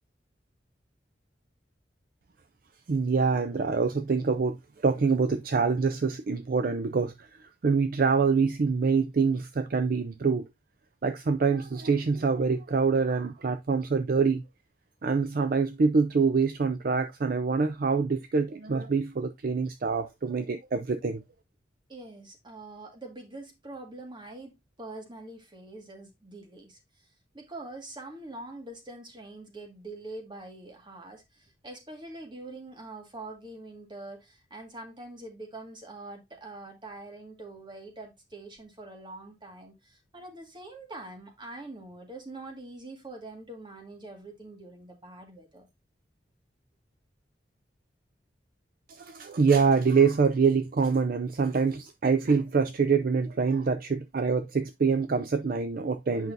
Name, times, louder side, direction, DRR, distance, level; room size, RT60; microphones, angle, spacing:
voice 1, 2.9-4.6 4.8-10.4 11.0-14.4 15.0-21.2 48.9-56.3, right 5 dB, 50° right, 0.4 m, -25 dB
voice 2, 21.9-45.7, right 2 dB, 25° right, 1.8 m, -44 dB
8.2 x 5.5 x 2.6 m
head